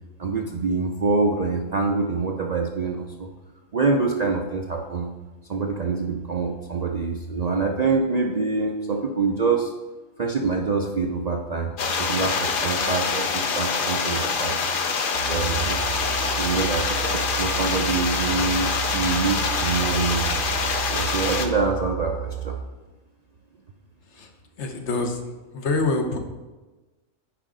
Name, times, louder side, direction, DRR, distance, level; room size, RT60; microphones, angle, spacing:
voice 1, 0.2-3.3 3.7-5.1 5.5-9.7 10.2-11.7 12.0-14.6 15.3-15.9 16.3-20.4 20.9-22.6, right 4 dB, 50° right, 2 dB, 0.5 m, -25 dB
sound 1, 11.8-21.5, left 5 dB, 50° left, 0.8 m, -25 dB
sound 2, 15.1-22.6, right 13 dB, 65° right, 0.9 m, -33 dB
voice 2, 24.6-25.2 25.5-26.2, left 3 dB, 70° left, 4 dB, 1.2 m, -25 dB
9.3 x 5.0 x 3.7 m, 1.2 s
omnidirectional pair, 1.3 m